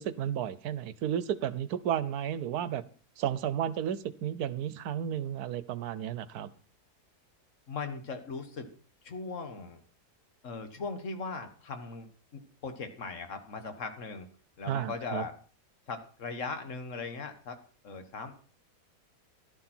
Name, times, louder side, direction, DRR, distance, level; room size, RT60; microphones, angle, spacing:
voice 1, 0.0-2.8 3.2-6.5 14.7-15.2, right 10 dB, 80° right, 16 dB, 1.3 m, -32 dB
voice 2, 7.7-8.7 9.0-9.8 10.4-12.1 12.6-14.3 14.6-15.3 15.9-17.6 17.8-18.3, left 4 dB, 55° left, 8 dB, 1.8 m, -38 dB
14.0 x 12.0 x 4.4 m, 0.40 s
omnidirectional pair, 1.6 m